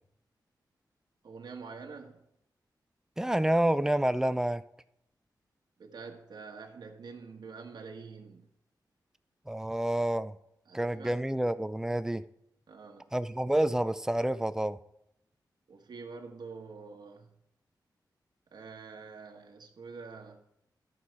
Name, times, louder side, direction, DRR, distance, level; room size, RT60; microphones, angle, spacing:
voice 1, 1.2-2.2 5.8-8.5 10.7-11.2 12.7-13.0 15.7-17.3 18.5-20.4, right 4 dB, 70° right, 1.4 m, -46 dB
voice 2, 3.2-4.6 9.5-10.3 10.7-12.2 13.1-14.8, right 1 dB, 5° right, 0.5 m, -28 dB
13.0 x 5.8 x 4.8 m
wide cardioid pair, 110°, 8 cm